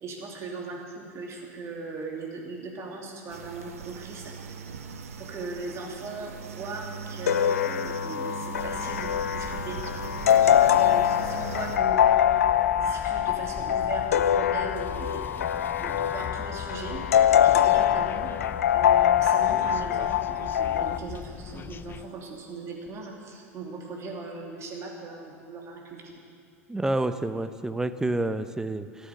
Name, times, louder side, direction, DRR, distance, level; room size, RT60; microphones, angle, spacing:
voice 1, 0.0-4.6 5.2-9.8 10.3-12.4 12.7-15.4 15.8-17.0 17.4-18.3 18.7-26.2, right 3 dB, 35° right, 0 dB, 2.9 m, -38 dB
sound 1, 3.3-11.8, right 6 dB, 75° right, 1.2 m, -39 dB
sound 2, 7.3-21.0, left 10 dB, 75° left, 0.4 m, -23 dB
sound 3, 8.6-22.1, left 8 dB, 25° left, 0.5 m, -41 dB
voice 2, 26.7-29.1, right 2 dB, 5° right, 11 dB, 0.7 m, -29 dB
14.0 x 13.0 x 6.5 m, 2.4 s
figure-of-eight pair, 85°, 8 cm